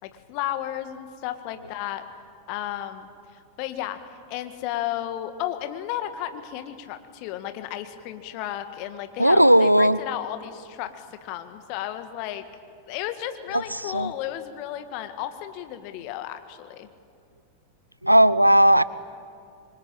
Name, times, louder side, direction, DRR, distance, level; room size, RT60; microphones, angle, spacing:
voice 1, 0.0-2.0 2.5-12.4 12.9-16.9, left 12 dB, 45° left, 9 dB, 1.8 m, -33 dB
voice 2, 9.2-10.0 13.9-14.1 18.0-18.8, equal, 90° right, 18 dB, 0.6 m, -16 dB
26.5 x 23.5 x 8.9 m, 2.3 s
figure-of-eight pair, 90°, 0 cm